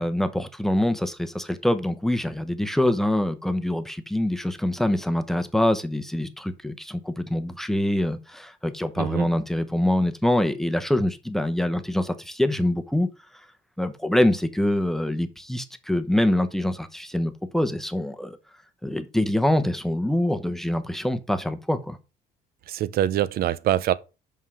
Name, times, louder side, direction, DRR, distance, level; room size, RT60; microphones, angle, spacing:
voice 1, 0.0-13.1 13.8-18.4 18.8-22.0, left 1 dB, ahead, 0.9 m, -25 dB
voice 2, 22.7-23.9, right 12 dB, 65° right, 0.6 m, -24 dB
5.7 x 5.5 x 6.3 m
cardioid pair, 110°, 17 cm